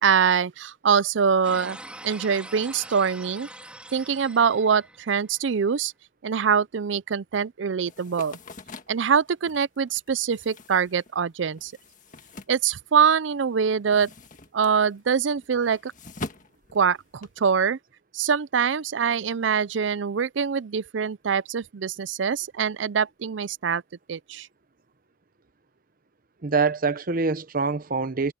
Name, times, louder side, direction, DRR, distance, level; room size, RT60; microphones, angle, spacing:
voice 1, 0.0-1.8 2.0-3.5 3.9-5.9 6.2-8.4 8.9-11.7 12.5-14.1 14.5-15.9 16.7-17.8 18.1-23.8 24.1-24.5, right 6 dB, 75° right, 0.5 m, -24 dB
sound 1, 1.4-5.5, right 1 dB, 5° right, 3.3 m, -43 dB
sound 2, 7.9-13.3 13.6-17.5, left 3 dB, 45° left, 1.7 m, -43 dB
voice 2, 26.4-28.3, right 4 dB, 50° right, 0.9 m, -24 dB
head